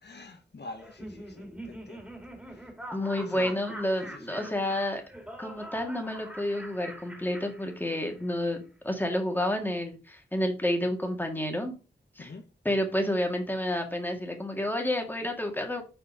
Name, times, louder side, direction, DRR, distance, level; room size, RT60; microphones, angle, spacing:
voice 1, 0.0-2.1 2.5-2.6 3.2-3.6 4.0-4.7 12.2-12.5, left 3 dB, 65° left, 1.1 m, -46 dB
Laughter, 0.8-8.3, right 1 dB, 5° right, 2.5 m, -44 dB
voice 2, 2.9-5.0 5.4-11.7 12.2-12.3 12.6-15.8, left 1 dB, 10° left, 2.0 m, -30 dB
6.7 x 4.5 x 5.0 m
wide cardioid pair, 80°, 19 cm